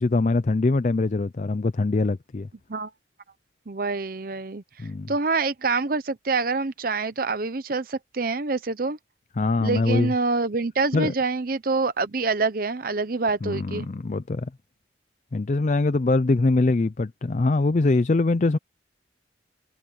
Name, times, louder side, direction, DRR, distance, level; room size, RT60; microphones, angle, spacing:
voice 1, 0.0-2.5 4.8-5.1 9.4-10.1 10.9-11.1 13.4-14.5 15.3-18.6, left 3 dB, 40° left, 0.4 m, -23 dB
voice 2, 3.7-9.0 9.6-13.9, right 3 dB, 50° right, 0.7 m, -26 dB
head